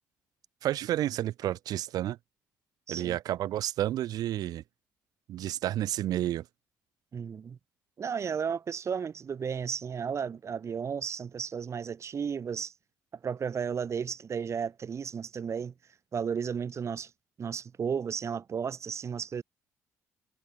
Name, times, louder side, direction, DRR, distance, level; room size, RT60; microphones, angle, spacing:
voice 1, 0.6-2.2 2.9-4.6 5.3-6.4, right 13 dB, 75° right, 4.2 m, -30 dB
voice 2, 2.9-3.2 7.1-7.6 8.0-12.7 13.2-15.7 16.1-17.1 17.4-19.4, right 6 dB, 45° right, 1.6 m, -33 dB
supercardioid pair, 70°, 7 cm